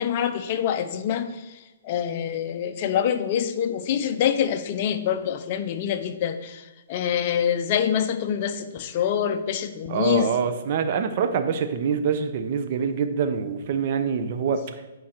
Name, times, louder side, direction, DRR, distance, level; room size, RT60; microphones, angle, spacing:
voice 1, 0.0-1.4 1.8-10.3, left 9 dB, 40° left, 8 dB, 0.7 m, -25 dB
voice 2, 9.9-14.6, right 6 dB, 45° right, 8 dB, 0.8 m, -25 dB
10.0 x 4.7 x 4.5 m, 1.0 s
hypercardioid pair, 150°, 0 cm